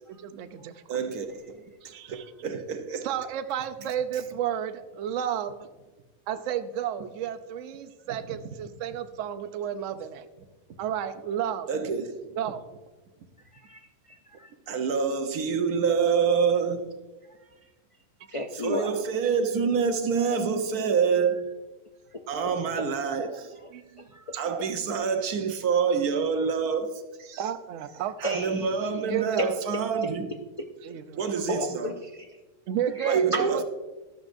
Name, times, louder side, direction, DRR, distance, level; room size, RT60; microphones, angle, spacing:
voice 1, 0.1-0.8 1.8-2.2 3.0-5.5 6.3-10.2 10.8-11.7 12.4-12.6 23.7-24.1 27.4-28.4 29.0-29.5 30.8-31.2 32.7-33.6, right 9 dB, 65° right, 0.9 m, -32 dB
voice 2, 0.9-1.6 2.1-3.1 8.3-8.4 11.7-12.2 14.7-16.9 18.5-21.5 22.3-23.5 24.4-27.4 28.2-30.3 31.2-31.9 33.0-33.6, right 6 dB, 85° right, 1.4 m, -27 dB
voice 3, 13.5-14.5 18.3-19.0 23.3-23.4 24.1-24.4 28.2-29.0 29.4-29.5 31.5-32.3 33.0-33.6, left 1 dB, 60° left, 0.3 m, -34 dB
13.5 x 11.5 x 2.6 m
omnidirectional pair, 1.5 m